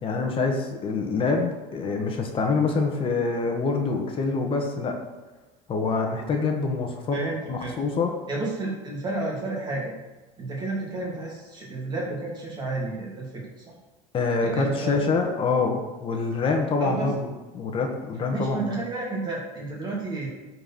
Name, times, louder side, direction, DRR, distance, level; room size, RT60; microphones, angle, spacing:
voice 1, 0.0-5.0 5.7-7.2 7.5-8.1 14.1-17.2 17.5-18.8, left 4 dB, 35° left, 3 dB, 1.6 m, -25 dB
voice 2, 7.1-7.8 8.3-9.9 10.4-13.7 14.4-15.0 16.8-17.1 18.3-20.3, right 2 dB, 25° right, -4 dB, 3.2 m, -31 dB
11.0 x 4.7 x 6.1 m, 1.2 s
cardioid pair, 130°, 16 cm